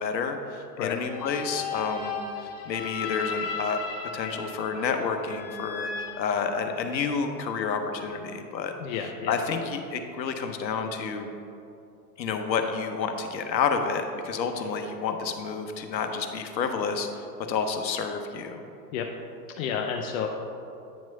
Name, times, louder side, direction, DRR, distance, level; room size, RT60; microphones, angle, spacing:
voice 1, 0.0-3.8 4.1-5.9 6.2-8.7 9.3-11.3 12.2-18.6, left 5 dB, 90° left, 6 dB, 0.8 m, -29 dB
sound 1, 1.1-7.1, left 5 dB, 30° left, 0.9 m, -36 dB
voice 2, 8.8-9.4 18.9-19.1 19.6-20.3, left 7 dB, 55° left, 2 dB, 0.6 m, -30 dB
8.9 x 3.0 x 5.4 m, 2.6 s
hypercardioid pair, 110°, 50 cm